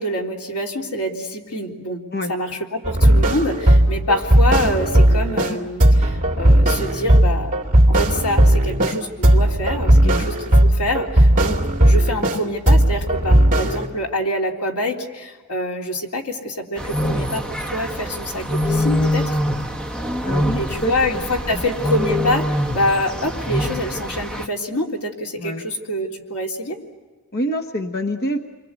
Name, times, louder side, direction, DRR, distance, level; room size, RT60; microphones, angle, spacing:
voice 1, 0.0-2.0 2.3-10.3 10.6-17.4 17.7-19.4 20.5-26.8, left 1 dB, 85° left, 1 dB, 3.5 m, -26 dB
sound 1, 2.8-5.5 5.8-9.0 9.2-12.4 12.7-13.9, right 1 dB, 40° right, 2.6 m, -16 dB
sound 2, 16.8-24.5, equal, 5° left, 1.1 m, -24 dB
voice 2, 20.2-21.6 25.3-25.6 27.3-28.4, equal, 45° left, 5 dB, 1.2 m, -27 dB
29.5 x 24.0 x 8.3 m, 1.4 s
head